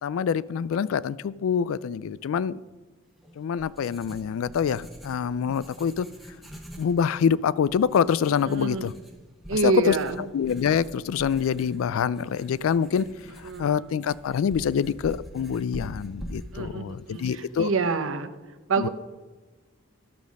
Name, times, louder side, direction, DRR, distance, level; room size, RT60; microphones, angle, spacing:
voice 1, 0.0-2.6 3.4-6.1 6.8-8.9 9.5-10.0 10.3-13.1 13.4-17.7 18.8-18.9, left 7 dB, 80° left, 20 dB, 0.3 m, -25 dB
Writing, 3.2-18.0, equal, ahead, 1.0 m, -45 dB
voice 2, 8.5-8.9 9.5-10.2 13.4-13.8 16.5-18.3 18.7-18.9, right 4 dB, 75° right, 10 dB, 0.7 m, -27 dB
12.0 x 5.2 x 6.3 m, 1.2 s
head